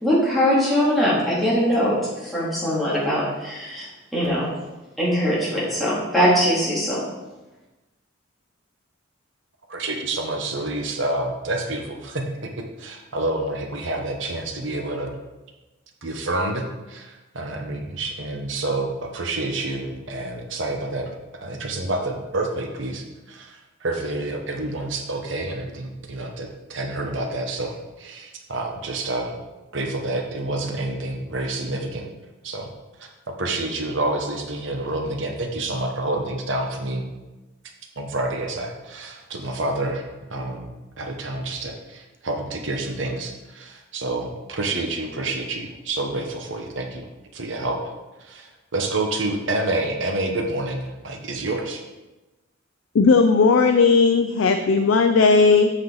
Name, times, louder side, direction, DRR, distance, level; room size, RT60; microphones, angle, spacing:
voice 1, 0.0-2.0 2.3-3.8 4.1-4.4 5.0-7.0, equal, ahead, -9 dB, 2.6 m, -21 dB
voice 2, 9.7-15.2 16.0-29.4 29.7-32.1 32.4-32.7 33.0-37.0 38.0-40.7 41.0-47.1 47.3-47.9 48.2-51.8, right 2 dB, 65° right, 3 dB, 1.0 m, -28 dB
voice 3, 52.9-55.7, left 4 dB, 70° left, 6 dB, 0.4 m, -16 dB
8.1 x 5.6 x 3.9 m, 1.1 s
head